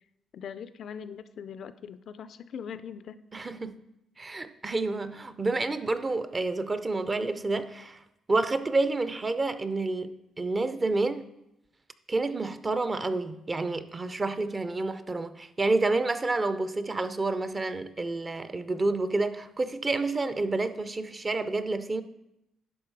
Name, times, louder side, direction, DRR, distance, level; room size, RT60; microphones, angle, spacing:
voice 1, 0.3-3.2, left 7 dB, 65° left, 0.4 m, -41 dB
voice 2, 3.3-3.7 4.2-8.0 8.3-11.3 12.1-22.0, right 3 dB, 25° right, 0.5 m, -29 dB
11.0 x 4.0 x 4.7 m
cardioid pair, 90°, 0 cm